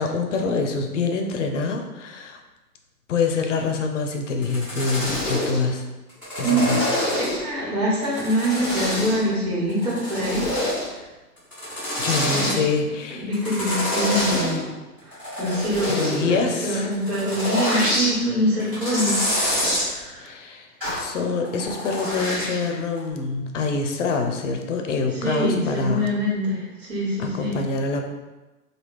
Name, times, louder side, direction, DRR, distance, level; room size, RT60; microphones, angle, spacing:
voice 1, 0.0-2.4 3.1-5.8 6.4-6.9 12.0-13.3 15.9-16.9 20.2-20.7 21.0-26.1 27.2-28.0, left 4 dB, 50° left, 4 dB, 0.5 m, -25 dB
sound 1, 4.4-5.6 6.1-7.5 8.0-9.3 9.7-10.9 11.4-12.6 13.3-14.6 15.0-16.2 16.9-18.1 18.6-19.9 20.8-21.1 21.4-22.6 23.0-23.1, left 1 dB, 5° right, 0.4 m, -26 dB
voice 2, 6.4-10.5 12.5-12.6 13.1-14.7 15.0-20.3 25.1-27.6, equal, 65° right, -4 dB, 1.4 m, -25 dB
3.3 x 2.3 x 3.1 m, 1.1 s
figure-of-eight pair, 115°, 47 cm